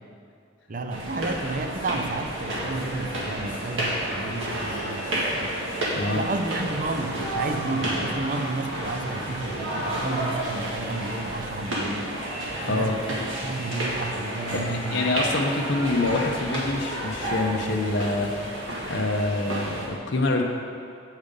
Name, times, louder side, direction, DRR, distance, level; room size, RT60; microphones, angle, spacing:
voice 1, 0.7-5.6 6.1-12.1 12.5-15.0, right 2 dB, 40° right, 6 dB, 0.5 m, -31 dB
sound 1, 0.9-19.9, right 1 dB, 75° right, 1.7 m, -31 dB
voice 2, 6.0-6.3 12.6-13.0 14.5-18.3 18.8-20.4, left 2 dB, 65° left, 0 dB, 0.7 m, -26 dB
8.2 x 5.4 x 5.2 m, 2.5 s
head